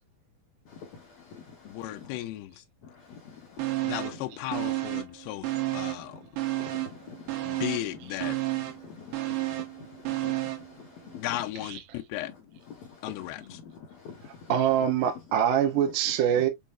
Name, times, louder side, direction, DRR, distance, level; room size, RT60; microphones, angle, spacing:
voice 1, 0.6-2.2 2.8-4.8 5.7-6.3 6.6-11.7 12.2-15.0 16.0-16.1, left 6 dB, 65° left, 1.7 m, -47 dB
voice 2, 1.7-2.6 3.8-6.2 7.4-8.4 11.2-12.3 13.0-13.4, left 15 dB, 85° left, 2.5 m, -35 dB
sound 1, 3.6-4.3 4.5-6.1 6.4-10.7 11.1-11.2, right 17 dB, 90° right, 3.2 m, -31 dB
voice 3, 11.6-12.0 14.2-16.5, right 9 dB, 70° right, 2.1 m, -25 dB
7.0 x 2.8 x 2.4 m
omnidirectional pair, 4.7 m